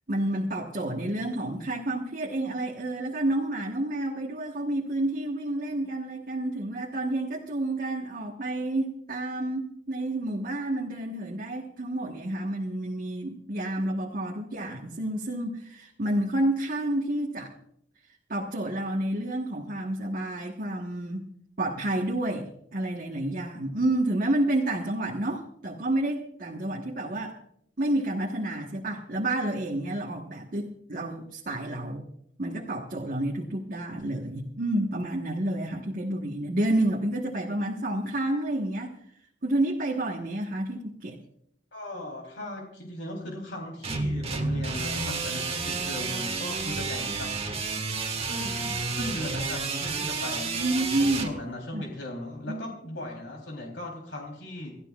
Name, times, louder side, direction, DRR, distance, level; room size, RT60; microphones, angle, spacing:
voice 1, 0.1-17.5 18.3-21.3 21.6-27.4 27.8-32.0 32.4-38.9 39.4-41.2 50.5-51.3 51.7-51.8 52.5-52.6, right 1 dB, 50° right, -1 dB, 1.4 m, -29 dB
voice 2, 41.7-47.6 48.2-50.6 51.0-54.7, left 1 dB, 75° left, 0 dB, 3.6 m, -38 dB
sound 1, 43.8-51.3, right 4 dB, 35° right, 1.7 m, -31 dB
29.0 x 14.0 x 2.5 m, 0.70 s
head